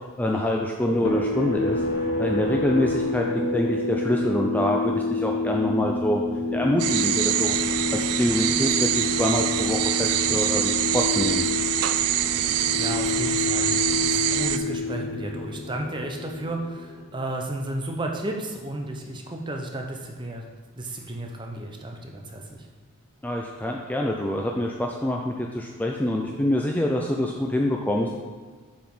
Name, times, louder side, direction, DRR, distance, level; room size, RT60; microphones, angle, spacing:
voice 1, 0.2-1.8 2.2-6.2 6.5-7.6 7.9-11.5 23.2-28.1, left 1 dB, 5° left, 0 dB, 0.4 m, -26 dB
sound 1, 0.9-17.1, left 3 dB, 65° left, 1.7 m, -28 dB
sound 2, 6.8-14.6, right 12 dB, 80° right, 0.4 m, -25 dB
voice 2, 12.7-20.4 20.8-22.4, right 1 dB, 20° right, 1 dB, 0.7 m, -33 dB
7.3 x 4.9 x 5.4 m, 1.5 s
head